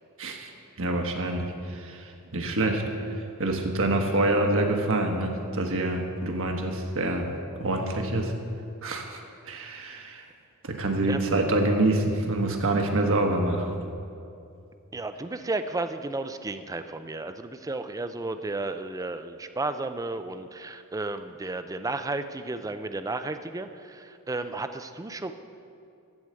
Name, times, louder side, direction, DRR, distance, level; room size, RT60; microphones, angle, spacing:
voice 1, 0.2-0.5 0.8-1.4 1.8-2.8 3.4-7.3 7.6-8.3 8.8-9.2 9.5-10.2 10.6-13.7, right 2 dB, 65° right, 3 dB, 1.3 m, -26 dB
voice 2, 14.9-25.3, right 2 dB, 15° right, 9 dB, 0.4 m, -33 dB
14.0 x 4.8 x 7.7 m, 2.6 s
head